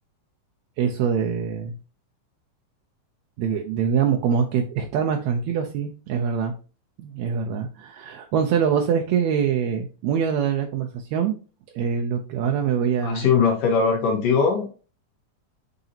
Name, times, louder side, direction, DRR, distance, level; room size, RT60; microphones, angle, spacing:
voice 1, 0.8-1.7 3.4-6.6 7.0-11.3 11.7-13.3, right 7 dB, 75° right, 3 dB, 1.7 m, -24 dB
voice 2, 13.0-14.8, left 5 dB, 80° left, 0 dB, 2.8 m, -20 dB
8.9 x 4.0 x 2.8 m, 0.34 s
omnidirectional pair, 3.8 m